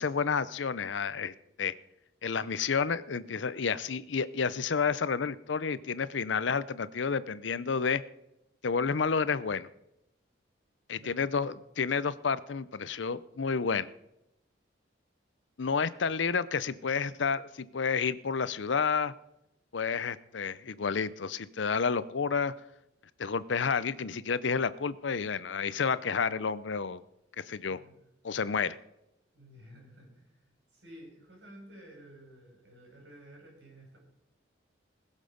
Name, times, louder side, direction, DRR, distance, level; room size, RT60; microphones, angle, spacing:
voice 1, 0.0-1.7 2.2-8.0 8.6-9.7 10.9-13.9 15.6-19.1 19.7-22.5 23.2-27.0 27.4-27.8 28.2-28.8, left 5 dB, 85° left, 16 dB, 0.6 m, -30 dB
voice 2, 10.9-11.5 16.0-16.1 27.7-27.9 29.3-34.0, right 1 dB, 70° right, -1 dB, 6.5 m, -53 dB
20.0 x 7.3 x 5.2 m, 0.85 s
head